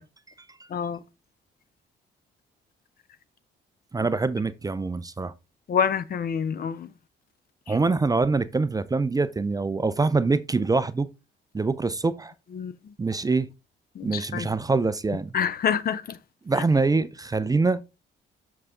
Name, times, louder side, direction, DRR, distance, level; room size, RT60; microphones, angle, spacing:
voice 1, 3.9-5.3 7.7-11.1 11.5-12.3 13.0-13.5 14.0-15.4 16.5-17.8, right 3 dB, 20° right, 0.5 m, -24 dB
voice 2, 5.7-6.9 12.5-12.7 14.0-14.5 15.3-16.2, left 7 dB, 50° left, 0.6 m, -26 dB
6.5 x 4.7 x 3.6 m
cardioid pair, 90°, 20 cm